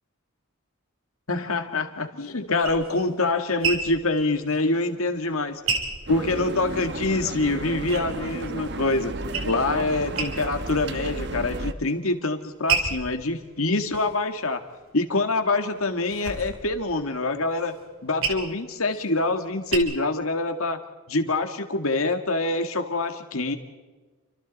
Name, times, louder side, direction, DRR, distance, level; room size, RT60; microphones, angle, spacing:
voice 1, 1.3-5.6 6.1-9.2 9.4-14.6 14.9-17.7 18.0-20.8 21.1-23.6, left 2 dB, 75° left, 7 dB, 2.0 m, -25 dB
sound 1, 2.2-6.9 7.3-8.6 8.9-9.8 10.1-10.8 11.2-11.7 12.3-15.0 15.4-19.8, right 5 dB, 65° right, 3.0 m, -32 dB
sound 2, 6.1-11.7, right 2 dB, 50° right, 1.1 m, -33 dB
29.5 x 25.0 x 4.2 m, 1.3 s
head